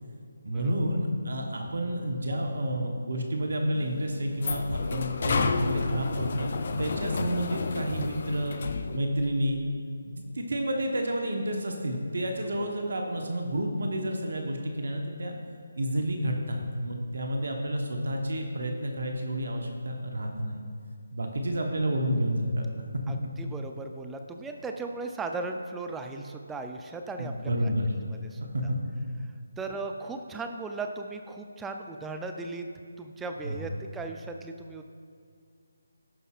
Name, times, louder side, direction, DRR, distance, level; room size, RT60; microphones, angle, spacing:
voice 1, 0.4-6.5 6.8-8.6 8.9-9.6 10.1-15.4 15.8-20.6 21.1-22.7 23.1-23.2 23.4-23.5 27.2-28.1 28.5-28.8 33.4-33.6, equal, 65° right, 2 dB, 1.1 m, -30 dB
sound 1, 3.7-9.0, left 4 dB, 50° left, 0.5 m, -31 dB
voice 2, 23.1-27.3 28.2-28.4 29.6-32.7 33.0-34.8, right 3 dB, 5° right, 4 dB, 0.5 m, -37 dB
16.0 x 5.5 x 2.5 m, 2.3 s
figure-of-eight pair, 155°, 0 cm